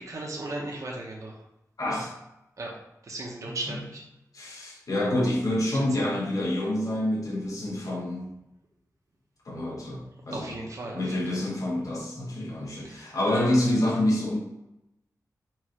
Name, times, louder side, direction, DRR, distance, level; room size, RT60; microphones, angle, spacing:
voice 1, 0.0-1.3 2.6-2.7 3.0-4.0 5.7-5.9 10.3-11.2 12.8-13.1, right 2 dB, 55° right, -1 dB, 0.9 m, -36 dB
voice 2, 1.8-2.1 3.4-3.8 4.3-8.3 9.4-10.6 10.9-14.4, left 1 dB, 60° left, -5 dB, 1.3 m, -27 dB
4.6 x 2.6 x 4.5 m, 0.89 s
wide cardioid pair, 90°, 7 cm